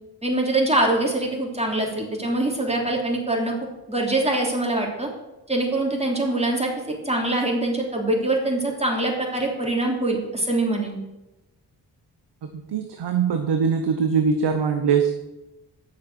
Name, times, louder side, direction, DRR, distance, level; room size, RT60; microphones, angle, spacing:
voice 1, 0.2-3.6 3.9-5.1 5.5-6.7 7.0-11.0, right 2 dB, 15° right, 0 dB, 3.0 m, -23 dB
voice 2, 12.4-15.1, right 6 dB, 75° right, 6 dB, 1.0 m, -22 dB
9.5 x 6.7 x 6.2 m, 1.0 s
cardioid pair, 50°, 42 cm